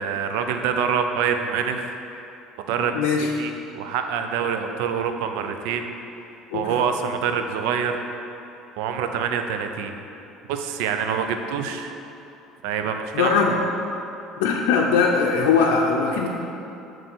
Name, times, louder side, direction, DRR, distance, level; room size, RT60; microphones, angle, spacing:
voice 1, 0.0-2.0 2.7-5.9 6.5-8.0 8.8-10.0 10.5-11.9 12.6-13.3, right 7 dB, 80° right, 6 dB, 0.5 m, -26 dB
voice 2, 2.9-3.3 6.5-6.7 13.1-13.5 14.4-16.3, left 5 dB, 85° left, -1 dB, 0.5 m, -20 dB
7.5 x 3.3 x 6.1 m, 2.8 s
supercardioid pair, 100°, 0 cm